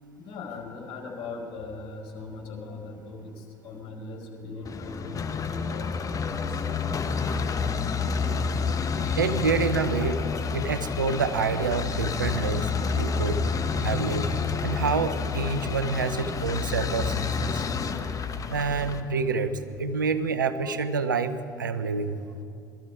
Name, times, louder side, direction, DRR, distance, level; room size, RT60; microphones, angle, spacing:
voice 1, 0.1-6.6 16.5-16.6, left 3 dB, 55° left, 2 dB, 4.9 m, -40 dB
sound 1, 4.6-19.0, left 5 dB, 35° left, 1.1 m, -29 dB
voice 2, 9.1-10.2 10.5-13.5 13.8-17.6 18.5-22.2, right 5 dB, 90° right, 12 dB, 0.7 m, -28 dB
21.5 x 13.5 x 4.8 m, 2.5 s
hypercardioid pair, 65°, 10 cm